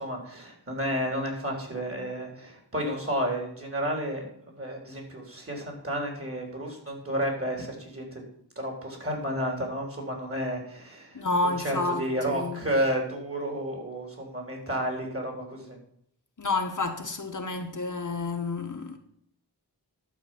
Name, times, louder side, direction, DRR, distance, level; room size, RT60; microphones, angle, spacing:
voice 1, 0.0-4.3 4.6-8.2 8.6-11.2 11.6-15.8, equal, 35° right, 3.6 m, -31 dB
voice 2, 11.1-12.6 16.4-19.0, left 3 dB, 50° left, 1.3 m, -30 dB
12.0 x 4.8 x 7.8 m
wide cardioid pair, 75°, 40 cm